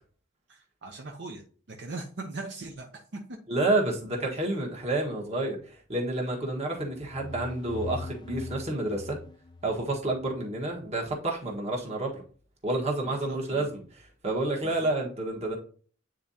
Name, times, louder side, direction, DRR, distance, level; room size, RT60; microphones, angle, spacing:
voice 1, 0.5-3.4 13.0-13.7 14.6-14.9, right 2 dB, 65° right, 2 dB, 0.8 m, -40 dB
voice 2, 3.5-9.2 9.6-12.2 12.6-15.6, right 2 dB, 35° right, 0 dB, 1.4 m, -29 dB
sound 1, 6.8-10.4, left 3 dB, 25° left, 0.3 m, -42 dB
9.0 x 3.7 x 2.8 m, 0.43 s
head